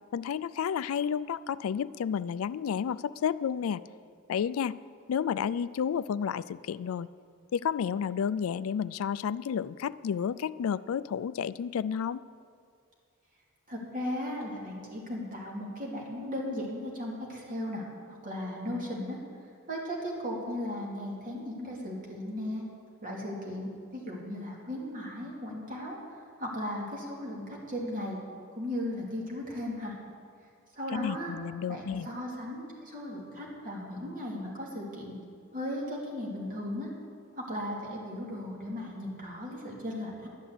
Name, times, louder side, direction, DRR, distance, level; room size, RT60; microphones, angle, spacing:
voice 1, 0.1-3.8 4.3-4.8 5.1-7.1 7.5-12.2 30.9-32.1, left 7 dB, 75° left, 17 dB, 0.3 m, -31 dB
voice 2, 13.7-19.2 19.7-22.6 23.0-26.0 26.4-28.2 28.5-29.9 30.7-31.3 31.7-35.2 35.5-36.9 37.3-40.3, left 1 dB, 40° right, -3 dB, 2.7 m, -36 dB
11.5 x 7.7 x 8.1 m, 2.4 s
head